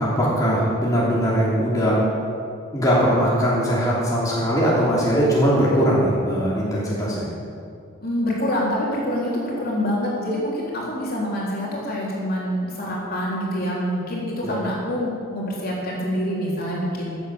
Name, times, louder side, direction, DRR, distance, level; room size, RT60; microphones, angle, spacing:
voice 1, 0.0-2.0 2.7-7.3 14.4-14.5, equal, 15° left, -7 dB, 3.2 m, -20 dB
voice 2, 8.0-17.1, equal, 45° left, -5 dB, 3.8 m, -26 dB
14.5 x 9.8 x 7.3 m, 2.3 s
head